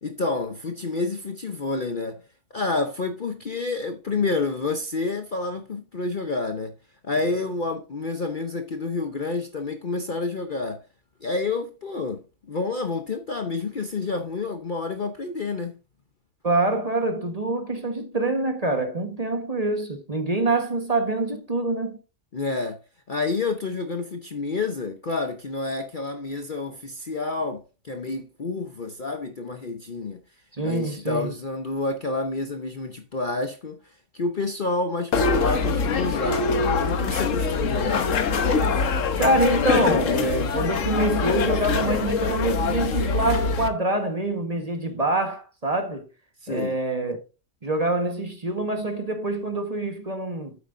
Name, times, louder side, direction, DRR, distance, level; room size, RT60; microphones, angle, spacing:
voice 1, 0.0-2.2 2.5-6.7 7.0-10.8 11.2-15.7 22.3-22.8 23.1-30.2 30.6-33.8 34.1-36.5 36.8-38.1 46.4-46.8, left 3 dB, 40° left, 0.8 m, -29 dB
voice 2, 16.4-22.0 30.5-31.3 39.2-46.1 46.5-47.2 47.6-50.6, right 2 dB, 30° right, 1.3 m, -25 dB
sound 1, 35.1-43.7, left 4 dB, 65° left, 1.3 m, -23 dB
9.4 x 8.2 x 2.6 m
omnidirectional pair, 1.5 m